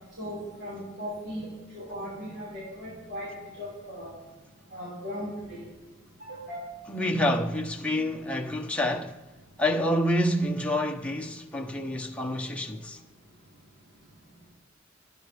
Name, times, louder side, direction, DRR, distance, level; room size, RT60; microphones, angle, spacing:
voice 1, 0.2-3.3 3.6-4.1 4.7-5.6 6.2-6.6, equal, 55° right, 5.4 m, -37 dB
voice 2, 6.9-9.2 9.6-13.0, left 1 dB, 5° left, 1.1 m, -28 dB
28.5 x 10.5 x 3.5 m
head